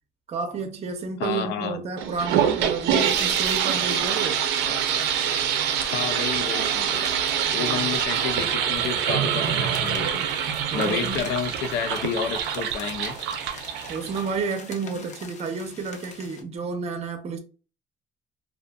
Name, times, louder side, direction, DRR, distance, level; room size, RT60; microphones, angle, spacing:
voice 1, 0.3-4.4 7.6-7.9 10.7-11.3 13.9-17.4, right 4 dB, 40° right, 0.6 m, -31 dB
voice 2, 1.2-1.8 5.8-7.0 7.5-10.2 10.7-13.2, left 7 dB, 90° left, 0.5 m, -30 dB
sound 1, 2.0-14.5, right 8 dB, 90° right, 0.5 m, -25 dB
sound 2, 3.0-16.4, left 4 dB, 45° left, 0.6 m, -44 dB
2.5 x 2.4 x 2.3 m
cardioid pair, 110°, 17 cm